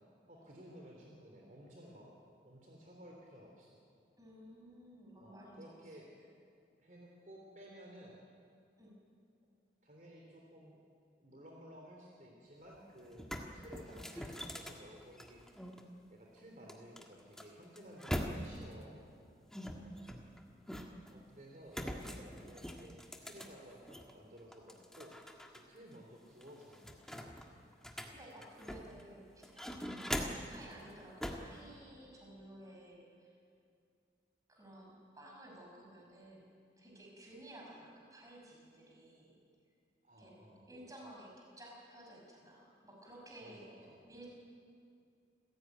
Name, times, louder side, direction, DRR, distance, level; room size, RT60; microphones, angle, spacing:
voice 1, 0.3-2.2 2.4-3.8 5.2-6.3 6.8-8.2 9.8-10.8 11.2-15.4 16.1-19.0 21.1-25.1 25.5-27.5 40.0-40.7 43.4-44.0, equal, 45° right, -1 dB, 3.3 m, -55 dB
voice 2, 4.2-6.0 8.8-8.9 19.7-20.1 28.1-33.4 34.5-36.5 36.8-39.4 40.2-40.3 40.7-44.3, right 1 dB, 20° right, -2 dB, 5.6 m, -55 dB
sound 1, 12.6-12.7 13.1-15.8 16.7-18.7 19.5-21.1 21.7-24.1 24.5-25.6 25.9-26.0 26.4-29.0 29.4-30.6 31.2-31.5, equal, 5° left, 1.6 m, -42 dB
27.5 x 16.0 x 9.3 m, 2.4 s
head